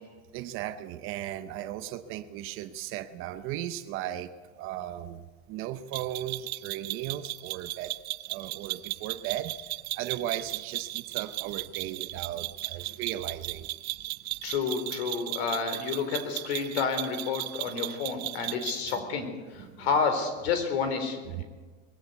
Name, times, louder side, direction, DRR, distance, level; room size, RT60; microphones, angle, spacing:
voice 1, 0.3-5.2 5.5-8.0 8.3-9.6 10.0-13.7 19.6-19.9 21.4-21.5, right 12 dB, 40° right, 11 dB, 0.9 m, -36 dB
sound 1, 5.9-19.0, right 18 dB, 80° right, 0.7 m, -36 dB
voice 2, 14.4-21.4, left 5 dB, 75° left, 8 dB, 4.0 m, -30 dB
21.0 x 15.0 x 8.2 m, 1.4 s
supercardioid pair, 150°, 32 cm